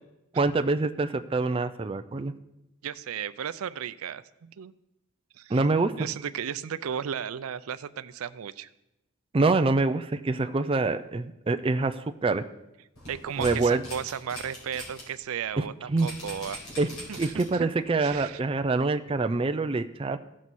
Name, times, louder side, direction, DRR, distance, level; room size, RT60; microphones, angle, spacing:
voice 1, 0.3-2.3 5.5-5.9 9.3-12.4 13.4-13.8 15.6-15.7 15.9-16.1 16.8-16.9 17.2-20.2, right 3 dB, 25° right, 8 dB, 0.3 m, -25 dB
voice 2, 2.8-4.7 5.4-5.7 6.0-8.7 13.1-16.6 17.1-17.7 18.0-18.4, right 8 dB, 90° right, 15 dB, 0.4 m, -35 dB
sound 1, 12.9-15.0 15.4-15.5 16.0-17.6 18.1-18.2, equal, 85° left, 4.4 m, -40 dB
15.5 x 6.2 x 4.1 m, 0.90 s
head